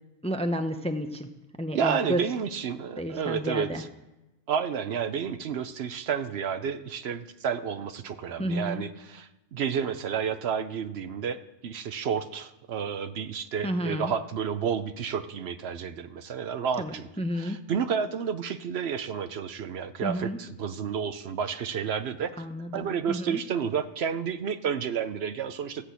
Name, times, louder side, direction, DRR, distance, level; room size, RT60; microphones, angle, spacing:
voice 1, 0.2-1.3 1.6-2.2 3.0-3.8 8.4-8.8 13.6-14.1 16.8-16.9 17.2-17.6 20.0-20.4 22.4-23.4, equal, 5° left, 6 dB, 0.6 m, -31 dB
voice 2, 1.7-3.9 4.5-17.1 17.3-22.3 22.7-25.8, right 7 dB, 65° right, 10 dB, 0.9 m, -31 dB
14.5 x 5.9 x 8.2 m, 1.0 s
omnidirectional pair, 1.2 m